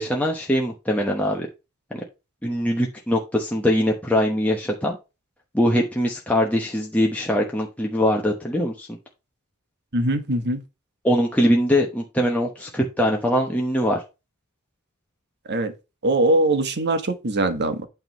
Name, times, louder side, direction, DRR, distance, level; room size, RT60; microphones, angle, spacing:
voice 1, 0.0-1.5 1.9-2.0 2.4-5.0 5.5-8.9 11.0-14.0, equal, 5° left, 1.0 m, -22 dB
voice 2, 9.9-10.6 15.5-15.7 16.0-17.9, right 2 dB, 50° right, 1.3 m, -22 dB
8.9 x 3.6 x 5.3 m
head